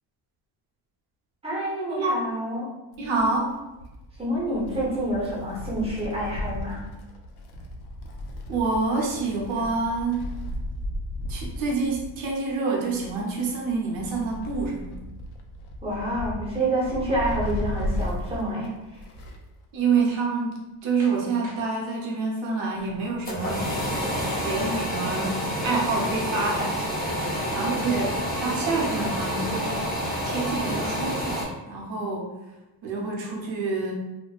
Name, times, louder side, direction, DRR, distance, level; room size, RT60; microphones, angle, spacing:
voice 1, 1.4-2.7 4.2-6.8 15.8-19.0, right 1 dB, 10° right, -5 dB, 0.8 m, -28 dB
Wind, 2.9-19.5 19.8-19.9 20.9-21.0, left 1 dB, 55° left, 0.5 m, -35 dB
voice 2, 3.0-3.5 8.5-10.3 11.3-14.9 19.7-23.7 24.4-27.1 27.5-29.8 30.2-31.4 31.7-32.3 32.8-33.9, right 4 dB, 70° right, -2 dB, 0.8 m, -27 dB
sound 1, 21.0-21.2 21.4-21.6 24.1-24.2 26.0-30.2, right 2 dB, 40° right, 0.6 m, -45 dB
sound 2, 22.9-31.4, equal, 20° left, 0.8 m, -28 dB
2.5 x 2.1 x 2.3 m, 1.0 s
cardioid pair, 100°, 48 cm